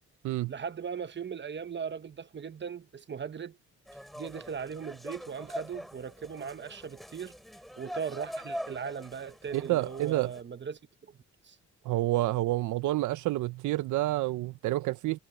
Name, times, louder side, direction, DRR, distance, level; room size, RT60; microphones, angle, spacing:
voice 1, 0.5-3.6 4.1-7.4 7.8-11.2 11.4-11.6, right 7 dB, 35° right, 1.2 m, -38 dB
sound 1, 3.9-10.4, equal, ahead, 7.2 m, -43 dB
voice 2, 9.5-10.3 11.8-15.2, right 17 dB, 80° right, 0.7 m, -29 dB
cardioid pair, 90°, 30 cm